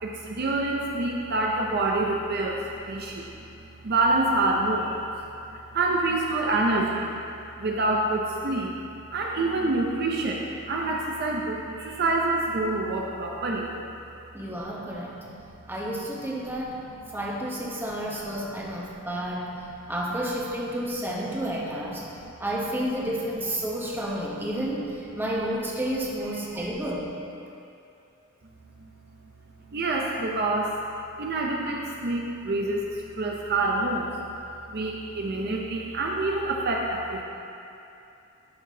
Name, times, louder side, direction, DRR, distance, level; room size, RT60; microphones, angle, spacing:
voice 1, 0.0-3.3 3.8-5.0 5.5-7.1 7.6-8.7 9.1-13.7 14.4-14.5 22.2-22.3 26.6-26.7 28.8-28.9 29.7-30.7 31.2-34.1 34.7-37.2, right 2 dB, 45° right, -1 dB, 0.5 m, -27 dB
voice 2, 14.3-15.2 15.7-16.8 17.1-19.5 19.9-22.0 22.4-27.1, right 1 dB, 10° right, -4 dB, 0.8 m, -31 dB
11.0 x 5.7 x 2.7 m, 2.7 s
head